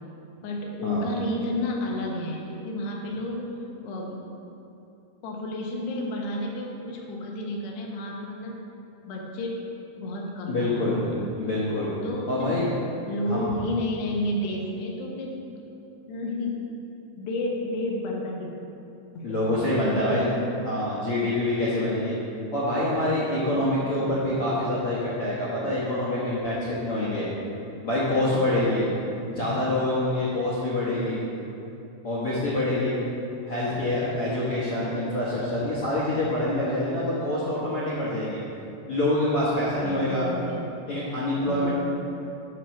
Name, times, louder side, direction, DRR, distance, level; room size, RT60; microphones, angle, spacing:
voice 1, 0.4-3.6 3.8-4.4 5.2-8.6 9.0-9.6 10.0-11.3 12.0-12.7 13.1-15.4 16.1-16.7 17.2-18.5 19.1-20.3 23.5-23.7 28.4-28.8 39.8-40.7 41.5-41.7, left 1 dB, 80° left, -1 dB, 3.3 m, -31 dB
voice 2, 10.5-11.1 11.4-11.9 12.3-12.7 13.2-13.5 19.2-20.4 20.6-22.2 22.5-27.3 27.8-28.9 29.3-31.2 32.0-33.0 33.5-38.4 38.9-40.3 40.9-41.7, left 1 dB, 65° left, -7 dB, 1.4 m, -26 dB
11.5 x 4.6 x 6.4 m, 2.8 s
omnidirectional pair, 4.8 m